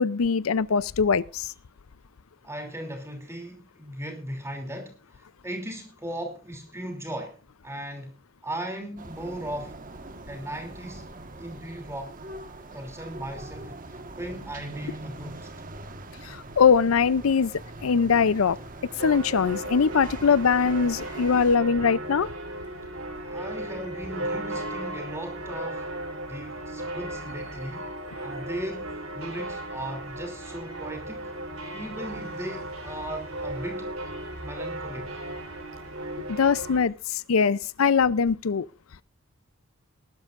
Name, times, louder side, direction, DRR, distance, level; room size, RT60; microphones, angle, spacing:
voice 1, 0.0-1.5 16.2-17.5 17.8-18.6 19.0-22.3 36.3-38.7, left 6 dB, 85° left, 0.5 m, -22 dB
voice 2, 2.4-8.1 8.4-9.8 10.3-11.1 11.4-12.2 12.7-15.5 23.2-25.9 26.3-27.9 28.2-31.3 31.7-33.9 34.4-35.1, right 1 dB, 15° right, 2.9 m, -37 dB
sound 1, 9.0-21.6, right 2 dB, 40° right, 1.5 m, -42 dB
sound 2, 19.0-36.8, right 1 dB, 85° right, 3.7 m, -36 dB
20.0 x 12.5 x 2.5 m
head